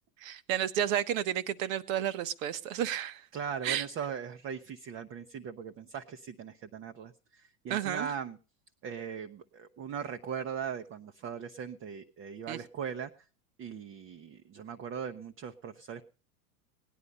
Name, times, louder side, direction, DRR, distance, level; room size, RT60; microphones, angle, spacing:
voice 1, 0.2-3.3 3.6-3.9 7.7-8.1 12.5-12.6, right 10 dB, 60° right, 15 dB, 1.1 m, -31 dB
voice 2, 3.3-8.4 8.8-13.1 13.6-16.0, right 7 dB, 30° right, 6 dB, 0.8 m, -39 dB
18.0 x 10.0 x 5.4 m, 0.38 s
hypercardioid pair, 90°, 46 cm